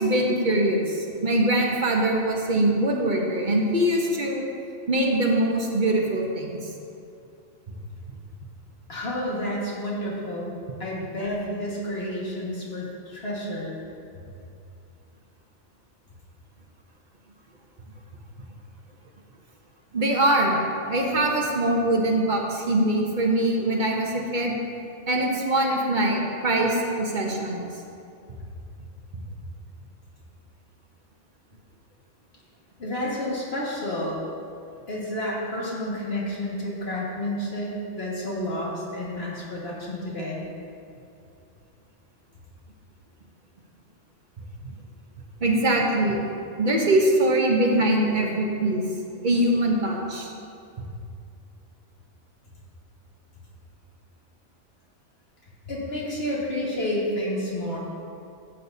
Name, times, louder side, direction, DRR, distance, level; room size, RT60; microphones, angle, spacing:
voice 1, 0.0-4.4 4.9-6.7 19.9-20.6 20.9-24.6 25.1-27.7 45.4-46.2 46.6-48.8 49.2-50.3, right 1 dB, 45° right, 0 dB, 1.1 m, -23 dB
voice 2, 8.9-13.7 32.8-34.2 34.9-40.5 55.6-57.8, left 1 dB, 55° left, -4 dB, 2.0 m, -30 dB
13.0 x 8.4 x 2.8 m, 2.5 s
omnidirectional pair, 1.3 m